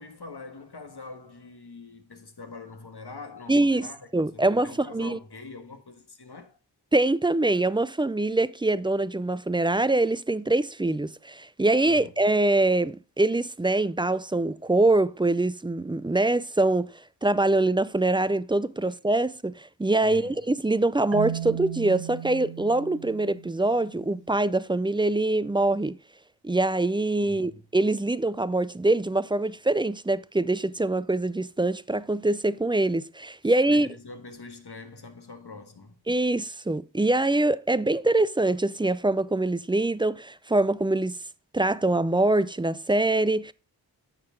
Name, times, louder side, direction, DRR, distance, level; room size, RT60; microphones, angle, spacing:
voice 1, 0.0-6.6 11.9-12.1 18.8-18.9 20.0-20.4 27.2-27.6 33.4-36.0, left 3 dB, 60° left, 1.6 m, -44 dB
voice 2, 3.5-3.9 4.1-4.7 4.9-5.2 6.9-16.9 17.2-26.0 26.4-33.9 36.1-41.2 41.5-43.5, right 2 dB, 10° right, 0.3 m, -24 dB
Marimba xylophone, 21.1-24.1, right 10 dB, 75° right, 0.6 m, -36 dB
9.4 x 6.6 x 3.7 m
wide cardioid pair, 45°, 45 cm